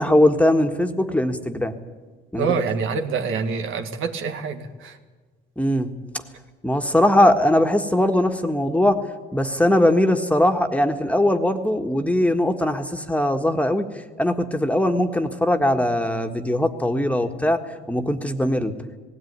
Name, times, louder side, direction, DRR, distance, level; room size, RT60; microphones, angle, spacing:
voice 1, 0.0-1.7 2.3-2.5 5.6-5.9 6.6-9.0 9.3-13.8 14.2-17.6 17.9-18.7, left 1 dB, 5° left, 6 dB, 1.6 m, -20 dB
voice 2, 2.4-5.0, right 5 dB, 85° right, 6 dB, 1.8 m, -26 dB
18.0 x 17.0 x 9.6 m, 1.3 s
cardioid pair, 90°, 20 cm